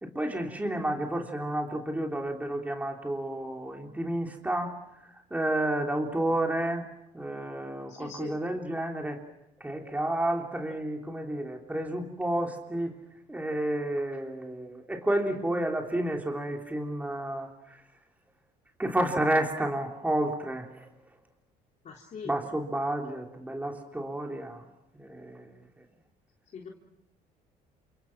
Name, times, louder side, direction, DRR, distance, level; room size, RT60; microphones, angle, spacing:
voice 1, 0.0-6.9 7.1-9.2 9.6-13.0 13.3-17.8 18.8-20.9 22.2-24.6 24.9-25.9, right 1 dB, 10° right, 2 dB, 3.5 m, -31 dB
voice 2, 7.9-8.3 21.9-22.3 26.5-26.7, left 6 dB, 45° left, -1 dB, 3.6 m, -41 dB
29.5 x 27.0 x 6.0 m, 0.89 s
cardioid pair, 110°, 17 cm